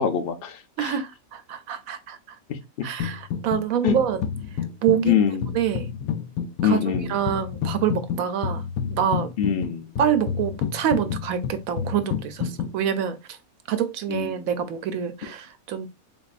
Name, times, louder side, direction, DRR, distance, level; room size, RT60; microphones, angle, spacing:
voice 1, 0.0-0.9 2.5-2.9 3.8-3.9 5.0-5.6 6.6-7.2 9.4-9.9 14.1-14.5, left 8 dB, 50° left, 0.8 m, -24 dB
voice 2, 0.8-2.4 2.8-4.2 4.8-5.2 5.5-5.9 6.6-8.6 8.9-9.3 10.0-13.4 13.7-15.9, right 9 dB, 80° right, 1.1 m, -26 dB
sound 1, 3.0-3.6 3.9-12.7, left 7 dB, 85° left, 1.0 m, -30 dB
4.0 x 3.5 x 2.4 m
omnidirectional pair, 1.5 m